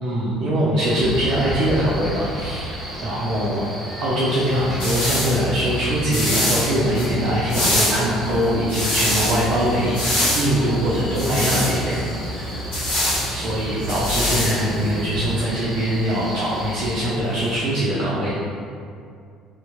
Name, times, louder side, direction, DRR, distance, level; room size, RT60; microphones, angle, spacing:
voice 1, 0.0-2.7 3.0-3.6 4.0-12.6 13.3-18.3, equal, 50° right, -7 dB, 0.4 m, -22 dB
Male speech man speaking, 0.8-17.0, right 1 dB, 20° right, 0.7 m, -34 dB
sound 1, 4.4-15.4, left 1 dB, 60° left, 0.8 m, -25 dB
Buzz, 8.6-17.7, right 1 dB, 90° left, 1.2 m, -41 dB
2.8 x 2.4 x 2.3 m, 2.3 s
figure-of-eight pair, 55°, 0 cm